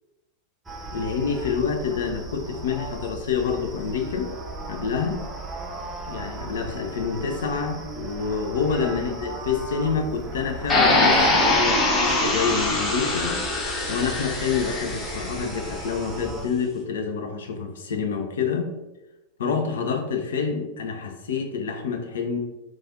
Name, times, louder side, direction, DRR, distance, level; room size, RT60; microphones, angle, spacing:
sound 1, 0.7-16.4, right 2 dB, 15° right, 0.5 m, -37 dB
voice 1, 0.9-4.3 4.7-5.2 6.1-13.4 13.9-18.7 19.4-22.4, left 6 dB, 60° left, 4 dB, 0.4 m, -27 dB
sound 2, 10.7-15.7, left 2 dB, 20° left, 0.8 m, -23 dB
3.1 x 2.3 x 2.5 m, 1.0 s
figure-of-eight pair, 90°, 0 cm